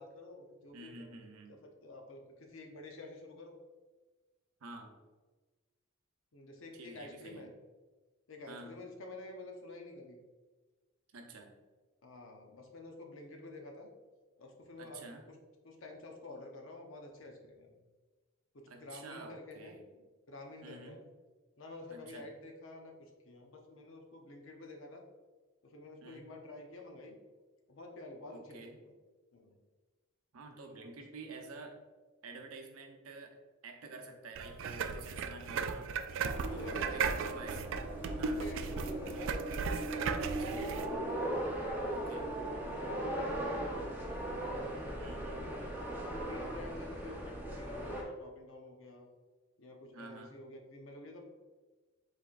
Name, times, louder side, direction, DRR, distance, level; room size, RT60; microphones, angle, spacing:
voice 1, 0.0-1.1 1.5-3.6 6.3-7.5 8.3-10.2 12.0-13.9 14.4-15.4 15.6-17.8 18.5-21.0 21.6-25.0 25.6-27.2 27.7-28.9 29.3-29.5 30.7-30.9 35.2-35.5 36.5-37.1 38.0-41.1 41.9-45.7 46.1-49.1 49.6-51.3, left 2 dB, 60° left, 2 dB, 0.8 m, -49 dB
voice 2, 0.7-1.6 4.6-4.9 6.7-7.5 8.5-8.8 11.1-11.5 14.8-15.2 18.7-19.9 20.6-21.0 21.9-22.3 26.0-26.3 28.3-28.8 30.3-31.8 32.2-33.4 33.6-35.9 36.5-37.7 38.2-38.5 40.2-40.7 41.9-42.3 45.0-45.5 49.9-50.4, right 3 dB, 85° right, 3 dB, 0.7 m, -49 dB
sound 1, 34.4-40.9, right 5 dB, 60° right, 0.3 m, -36 dB
sound 2, 36.2-48.0, right 1 dB, 10° right, 0.6 m, -39 dB
4.7 x 4.2 x 2.5 m, 1.3 s
head